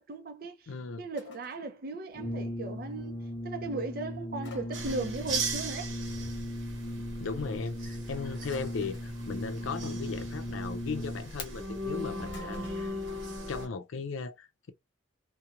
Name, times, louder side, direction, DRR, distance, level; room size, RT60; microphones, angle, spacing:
voice 1, 0.0-0.5 1.0-3.2 3.4-5.9, right 3 dB, 50° right, 0.5 m, -37 dB
voice 2, 0.7-1.1 7.2-12.9 13.5-14.7, left 4 dB, 90° left, 0.5 m, -37 dB
sound 1, 1.2-1.7 4.4-5.2 8.5-9.2 12.3-12.8, left 5 dB, 65° left, 0.8 m, -51 dB
Brass instrument, 2.1-11.5, equal, 25° left, 0.6 m, -38 dB
sound 2, 4.7-13.7, right 2 dB, 75° right, 0.9 m, -38 dB
2.8 x 2.2 x 2.4 m
head